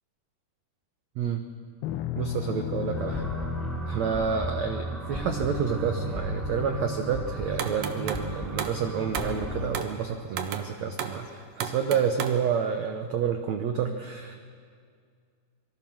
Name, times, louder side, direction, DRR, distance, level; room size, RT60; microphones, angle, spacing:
voice 1, 1.2-1.5 2.2-3.3 3.9-14.4, right 7 dB, 90° right, 5 dB, 1.5 m, -29 dB
sound 1, 1.8-6.3, left 14 dB, 85° left, 2.8 m, -36 dB
sound 2, 2.9-9.7, equal, ahead, 3.7 m, -34 dB
sound 3, 7.6-8.3 8.6-8.9 9.1-9.4 9.7-10.0 10.3-10.7 11.0-11.2 11.6-12.4, right 8 dB, 65° right, 2.6 m, -33 dB
25.0 x 23.5 x 6.3 m, 2.1 s
omnidirectional pair, 4.7 m